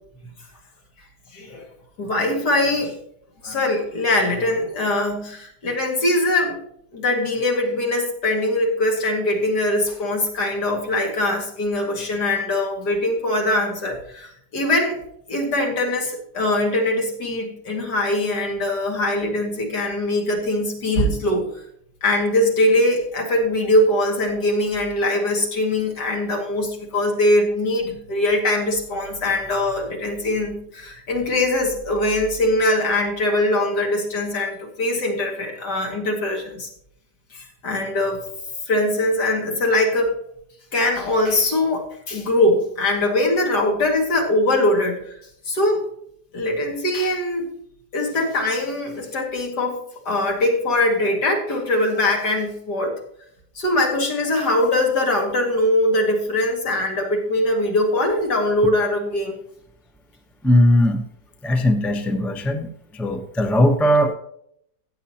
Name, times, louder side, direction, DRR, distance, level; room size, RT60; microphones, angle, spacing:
voice 1, 1.3-1.6 2.0-3.0 3.4-6.6 6.9-15.0 15.3-21.5 22.0-36.7 37.3-38.2 38.7-40.2 40.7-45.2 45.5-45.8 46.3-47.5 47.9-53.0 53.5-59.4, left 1 dB, 65° left, 1 dB, 2.8 m, -22 dB
voice 2, 60.4-61.0 61.4-64.1, left 1 dB, ahead, 5 dB, 0.5 m, -19 dB
15.0 x 8.5 x 2.9 m, 0.70 s
omnidirectional pair, 1.9 m